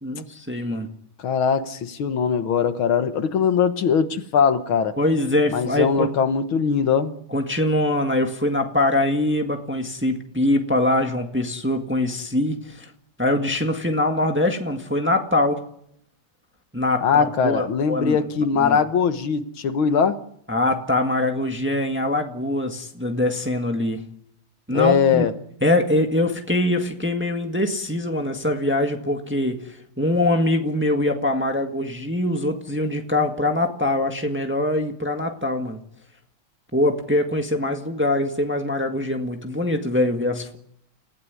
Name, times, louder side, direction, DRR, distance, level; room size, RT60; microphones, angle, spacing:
voice 1, 0.0-0.9 5.0-6.1 7.3-12.9 13.2-15.6 16.7-18.2 18.6-18.8 20.5-24.0 24.7-25.3 25.6-35.8 36.7-40.6, left 1 dB, 5° right, 4 dB, 1.4 m, -23 dB
voice 2, 1.2-4.9 5.5-7.1 17.0-20.2 24.7-25.3, left 6 dB, 70° left, 10 dB, 2.0 m, -21 dB
30.0 x 16.0 x 9.6 m, 0.75 s
omnidirectional pair, 2.4 m